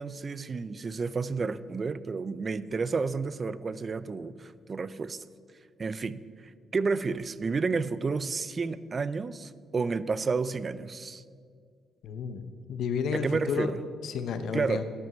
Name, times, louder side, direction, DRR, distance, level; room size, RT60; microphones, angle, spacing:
voice 1, 0.0-5.2 5.8-6.2 6.7-11.2 13.1-13.8 14.5-14.8, right 4 dB, 35° right, 16 dB, 0.4 m, -31 dB
voice 2, 12.0-12.4 12.7-13.7 14.0-14.8, left 6 dB, 75° left, 9 dB, 0.8 m, -31 dB
12.5 x 5.8 x 7.8 m, 2.1 s
cardioid pair, 90°, 0 cm